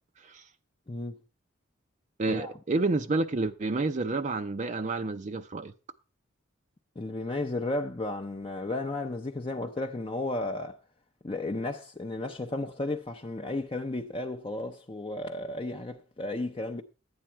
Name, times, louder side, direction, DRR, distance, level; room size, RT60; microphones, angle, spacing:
voice 1, 0.9-1.2 2.3-2.5 7.0-10.8 11.2-16.8, left 2 dB, 25° left, 0.6 m, -33 dB
voice 2, 2.2-5.7, right 3 dB, 35° right, 0.5 m, -29 dB
11.5 x 8.8 x 4.4 m
head